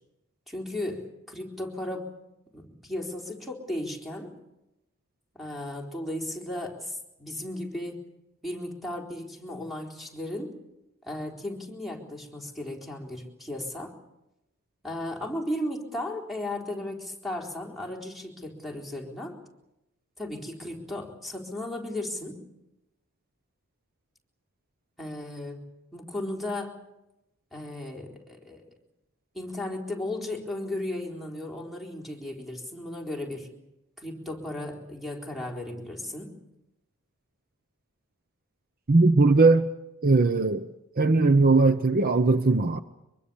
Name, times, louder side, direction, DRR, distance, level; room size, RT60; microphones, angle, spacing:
voice 1, 0.5-2.1 2.5-4.3 5.3-8.0 8.4-10.5 11.0-13.9 14.8-19.3 20.2-22.4 25.0-25.6 25.9-26.8 27.5-28.6 29.3-33.5 34.0-36.4, left 1 dB, ahead, -1 dB, 4.0 m, -35 dB
voice 2, 38.9-39.7 40.0-40.7 41.0-42.8, right 3 dB, 45° right, 10 dB, 0.9 m, -19 dB
24.0 x 23.5 x 7.0 m, 0.91 s
head